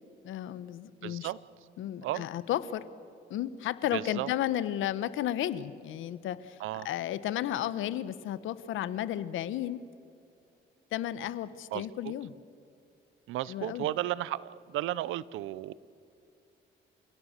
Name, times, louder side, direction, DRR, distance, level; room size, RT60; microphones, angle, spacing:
voice 1, 0.2-1.3 1.8-2.8 3.3-6.6 6.8-9.8 10.9-12.3 13.5-13.9, left 12 dB, 85° left, 16 dB, 1.1 m, -33 dB
voice 2, 1.0-1.4 2.0-2.3 3.9-4.3 6.6-6.9 11.7-12.1 13.3-15.7, right 14 dB, 90° right, 20 dB, 0.7 m, -34 dB
29.5 x 17.0 x 6.7 m, 2.6 s
cardioid pair, 90°, 20 cm